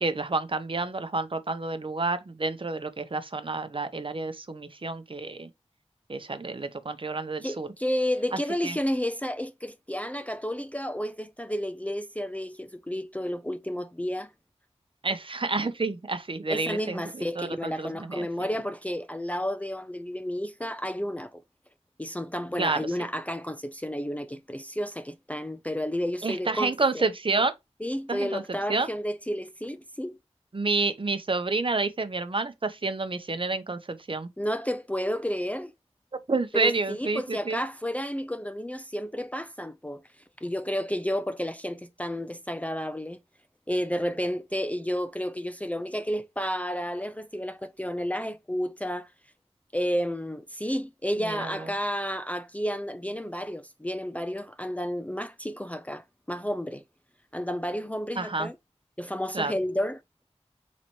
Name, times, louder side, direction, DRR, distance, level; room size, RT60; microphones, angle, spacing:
voice 1, 0.0-5.5 6.1-7.7 8.3-8.8 15.0-18.3 22.6-22.9 26.2-27.5 28.1-28.9 30.5-34.3 36.3-37.6 51.2-51.7 58.2-58.5 59.3-59.5, right 3 dB, 50° right, 0.8 m, -29 dB
voice 2, 7.4-14.3 16.5-21.4 22.0-27.0 27.8-30.2 34.4-35.7 36.5-40.0 40.4-43.2 43.7-49.1 49.7-56.8 57.3-58.6 59.0-60.0, equal, 10° left, 0.4 m, -31 dB
4.1 x 3.0 x 4.3 m
wide cardioid pair, 45°, 11 cm